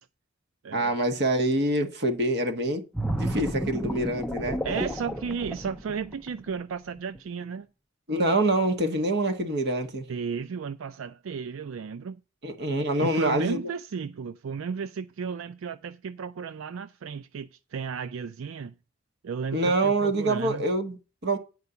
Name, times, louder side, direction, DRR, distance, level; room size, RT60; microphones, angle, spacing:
voice 1, 0.7-4.6 8.1-10.0 12.4-13.6 19.5-21.4, right 1 dB, 55° right, 1.6 m, -26 dB
sound 1, 2.9-6.5 7.0-7.2, right 1 dB, ahead, 0.5 m, -31 dB
voice 2, 4.6-7.7 10.1-12.2 13.0-18.7 19.2-20.6, right 6 dB, 85° right, 0.4 m, -34 dB
9.5 x 4.6 x 6.9 m
head